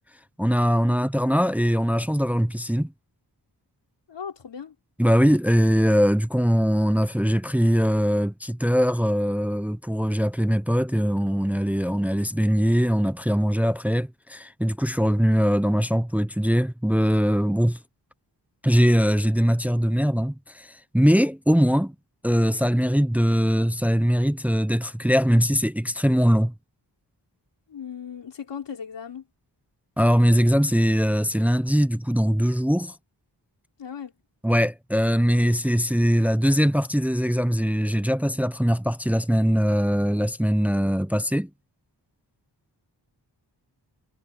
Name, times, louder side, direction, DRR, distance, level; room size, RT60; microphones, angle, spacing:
voice 1, 0.4-2.9 5.0-17.8 18.6-21.9 22.2-26.5 30.0-32.9 34.4-41.5, equal, 5° right, 0.8 m, -21 dB
voice 2, 4.1-4.8 27.7-29.3 33.8-34.1, left 7 dB, 90° left, 3.7 m, -37 dB
cardioid pair, 60°, 42 cm